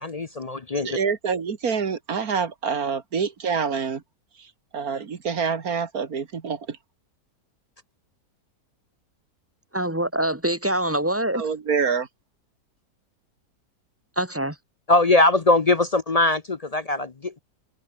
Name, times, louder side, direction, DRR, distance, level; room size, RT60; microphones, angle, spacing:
voice 1, 0.0-0.9 14.9-17.4, left 2 dB, 40° left, 0.5 m, -21 dB
voice 2, 0.8-4.0 4.4-4.5 4.7-6.8 11.3-12.1, right 6 dB, 65° right, 2.1 m, -26 dB
voice 3, 9.7-11.4 14.2-14.6, right 1 dB, 10° right, 2.4 m, -24 dB
open air
omnidirectional pair, 1.7 m